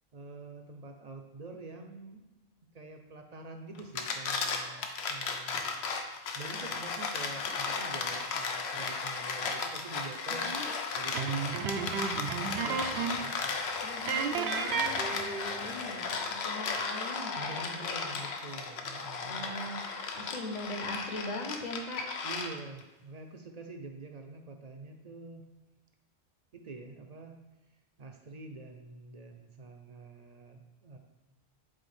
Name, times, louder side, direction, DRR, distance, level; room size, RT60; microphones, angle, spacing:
voice 1, 0.1-2.3 2.7-5.9 6.3-10.5 10.9-13.6 17.4-19.5 22.2-25.4 26.5-27.3 28.0-31.0, right 3 dB, 50° right, 4 dB, 0.5 m, -46 dB
sound 1, 3.8-22.8, left 4 dB, 85° left, 0.9 m, -35 dB
voice 2, 10.3-10.7 13.8-18.2 19.2-19.8 20.1-22.0, left 1 dB, 45° left, 2 dB, 0.9 m, -41 dB
sound 2, 11.1-13.3 13.6-13.7 14.1-15.7, right 6 dB, 85° right, 0.8 m, -33 dB
7.6 x 4.0 x 3.2 m, 1.1 s
omnidirectional pair, 1.1 m